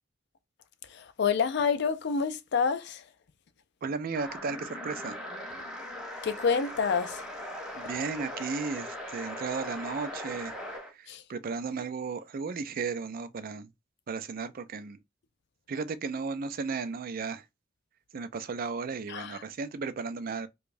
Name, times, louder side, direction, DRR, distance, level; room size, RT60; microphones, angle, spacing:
voice 1, 0.9-3.0 6.2-7.3 11.1-11.2 19.1-19.3, left 6 dB, 60° left, 0.4 m, -28 dB
voice 2, 3.8-5.2 7.8-13.7 14.1-15.0 15.7-17.4 18.1-20.5, right 4 dB, 50° right, 0.4 m, -35 dB
sound 1, 4.1-10.9, left 1 dB, 5° right, 1.4 m, -40 dB
4.7 x 2.2 x 2.6 m
head